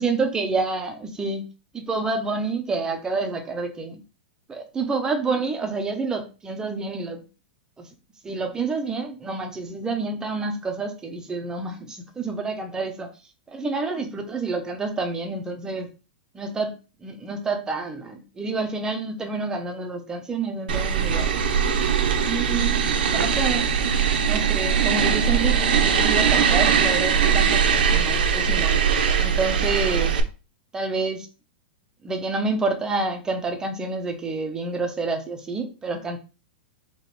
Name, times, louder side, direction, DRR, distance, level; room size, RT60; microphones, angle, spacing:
voice 1, 0.0-1.4 1.7-4.0 4.5-7.2 7.8-7.9 8.2-13.1 13.5-15.9 16.3-16.7 17.0-21.4 22.2-22.8 23.1-23.7 24.2-28.7 29.2-30.2 30.7-31.3 32.0-36.2, right 3 dB, 10° right, 5 dB, 0.8 m, -28 dB
sound 1, 20.7-30.2, right 7 dB, 75° right, 0.8 m, -21 dB
4.8 x 3.1 x 3.1 m, 0.33 s
supercardioid pair, 145°, 5 cm